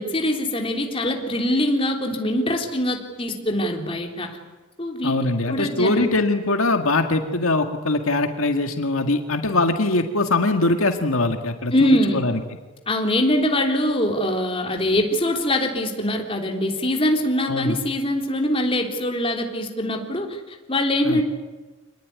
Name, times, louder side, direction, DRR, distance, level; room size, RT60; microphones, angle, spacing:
voice 1, 0.0-4.3 4.8-5.1 5.5-6.1 11.7-12.2 12.9-21.2, left 1 dB, 25° left, 2 dB, 3.6 m, -23 dB
voice 2, 5.0-12.4 17.5-17.8 21.0-21.2, left 2 dB, 75° left, 5 dB, 2.0 m, -22 dB
26.5 x 20.0 x 9.7 m, 1.2 s
head